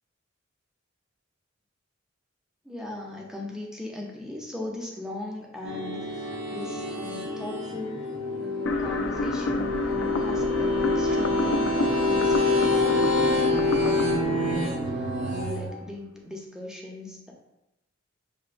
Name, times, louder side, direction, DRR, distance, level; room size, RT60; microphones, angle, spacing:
voice 1, 2.6-8.1 8.4-17.3, left 2 dB, 5° right, -1 dB, 0.6 m, -39 dB
sound 1, 5.7-15.7, left 2 dB, 85° right, 0.9 m, -26 dB
sound 2, 8.7-15.7, left 2 dB, 70° left, 0.4 m, -31 dB
6.6 x 2.7 x 2.5 m, 0.93 s
head